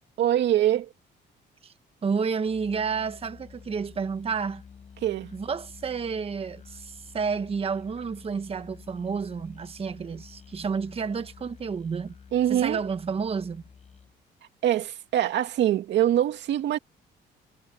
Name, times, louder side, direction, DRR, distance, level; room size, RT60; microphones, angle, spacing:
voice 1, 0.2-0.9 5.0-5.3 12.3-12.8 14.6-16.8, right 11 dB, 70° right, 2.5 m, -24 dB
voice 2, 2.0-4.6 5.3-12.2 12.5-13.6, right 5 dB, 30° right, 1.1 m, -30 dB
Musical instrument, 2.4-14.2, left 6 dB, 35° left, 7.0 m, -50 dB
cardioid pair, 115°, 19 cm